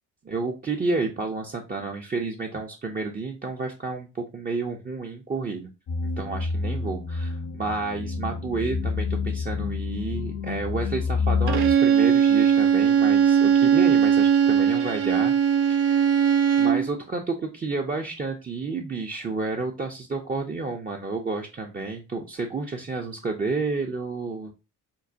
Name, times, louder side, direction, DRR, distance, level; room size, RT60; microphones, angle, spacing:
voice 1, 0.2-5.7 6.0-15.3 15.7-16.2 16.6-24.5, right 3 dB, 20° right, 1 dB, 0.5 m, -30 dB
sound 1, 5.9-11.7, left 4 dB, 40° left, 0.5 m, -28 dB
Bowed string instrument, 11.5-16.9, right 8 dB, 70° right, 0.6 m, -19 dB
5.3 x 2.1 x 2.5 m, 0.28 s
hypercardioid pair, 50°, 44 cm